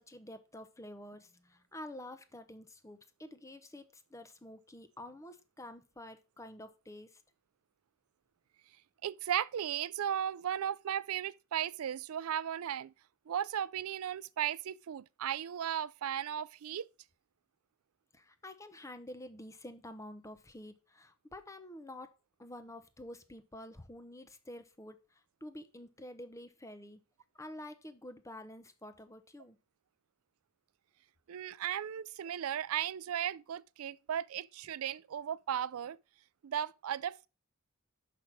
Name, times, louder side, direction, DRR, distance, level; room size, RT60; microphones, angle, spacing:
voice 1, 0.0-7.2 18.1-22.1 22.4-27.0 27.3-29.6, left 1 dB, 15° left, 0.7 m, -49 dB
voice 2, 9.0-12.9 13.3-16.8 31.3-36.0 36.4-37.3, right 10 dB, 90° right, 0.4 m, -36 dB
5.9 x 5.2 x 6.2 m
head